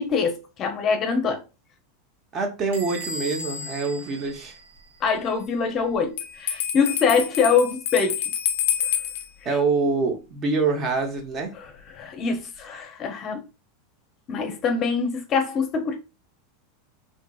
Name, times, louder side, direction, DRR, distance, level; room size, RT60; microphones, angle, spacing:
voice 1, 0.0-1.4 5.0-8.2 11.9-13.5 14.3-16.0, left 5 dB, 35° left, 0.6 m, -24 dB
voice 2, 2.3-4.5 9.4-11.5, right 4 dB, 35° right, 0.7 m, -25 dB
Bell / Squeak, 2.7-5.2, equal, 80° right, 0.6 m, -37 dB
Bell, 6.2-9.3, left 9 dB, 85° left, 0.5 m, -27 dB
2.7 x 2.6 x 2.3 m
supercardioid pair, 125°, 0 cm